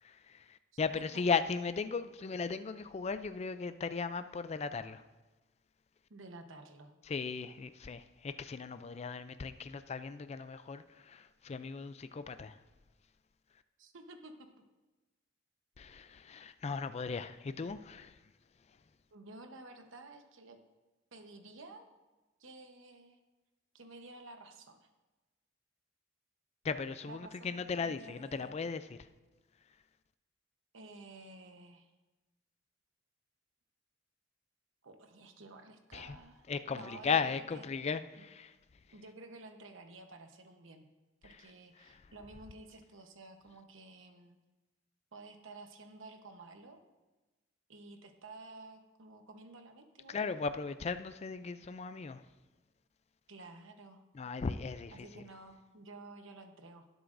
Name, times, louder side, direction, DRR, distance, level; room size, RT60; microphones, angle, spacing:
voice 1, 0.0-5.0 7.1-12.6 15.8-18.2 26.6-29.0 35.9-36.2 36.5-38.5 41.2-41.4 41.8-42.1 50.1-52.3 54.1-55.2, left 5 dB, 35° left, 0.4 m, -37 dB
voice 2, 6.1-6.9 13.8-14.3 19.1-20.6 21.1-21.9 22.4-23.2 23.7-24.9 27.1-28.5 30.7-31.9 34.8-37.6 38.9-40.8 41.2-44.4 45.1-46.8 47.7-50.2 53.3-54.0 54.9-56.9, right 2 dB, 90° right, 1.0 m, -52 dB
17.5 x 7.9 x 2.6 m
head